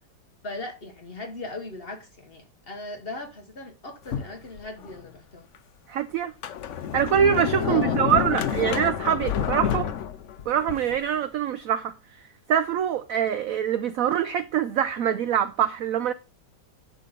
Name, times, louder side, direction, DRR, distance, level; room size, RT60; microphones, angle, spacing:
voice 1, 0.4-5.5 7.6-8.0, left 2 dB, 35° left, 1.3 m, -38 dB
Sliding door, 4.1-5.0 5.5-5.6 6.2-11.1, left 9 dB, 60° left, 0.8 m, -28 dB
voice 2, 5.9-6.3 6.9-9.9 10.5-11.9 12.5-16.1, right 9 dB, 75° right, 0.8 m, -24 dB
10.5 x 3.7 x 5.4 m
omnidirectional pair, 1.9 m